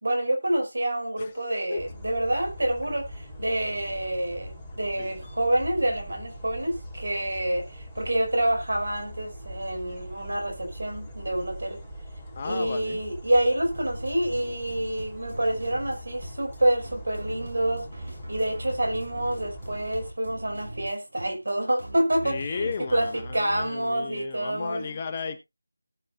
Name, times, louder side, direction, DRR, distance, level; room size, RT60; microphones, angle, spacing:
voice 1, 0.0-11.8 12.4-17.9 18.3-25.0 25.3-25.4, right 1 dB, 60° right, 5.1 m, -27 dB
voice 2, 1.2-1.9 5.0-5.1 12.3-13.0 22.2-25.4, left 5 dB, 25° left, 1.1 m, -34 dB
sound 1, 1.8-20.1, equal, 5° left, 4.2 m, -42 dB
sound 2, 13.7-23.6, right 1 dB, 80° right, 6.0 m, -41 dB
19.0 x 6.7 x 2.4 m
figure-of-eight pair, 165°, 0 cm